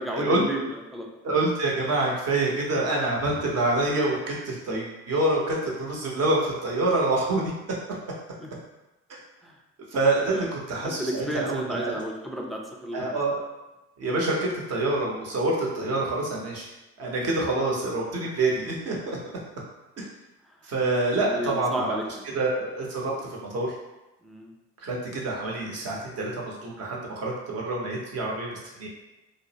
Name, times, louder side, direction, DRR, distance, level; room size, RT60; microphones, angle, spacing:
voice 1, 0.0-1.1 8.4-8.5 9.4-9.6 10.3-10.5 10.8-13.2 21.2-22.0 24.2-24.5, equal, ahead, 0 dB, 0.4 m, -32 dB
voice 2, 1.2-7.5 9.9-11.9 12.9-13.4 14.0-16.7 17.0-19.2 20.0-20.1 20.6-21.9 22.3-23.1 23.5-23.7 24.8-28.9, right 2 dB, 50° right, -2 dB, 0.8 m, -26 dB
2.4 x 2.0 x 2.8 m, 0.99 s
supercardioid pair, 75°, 33 cm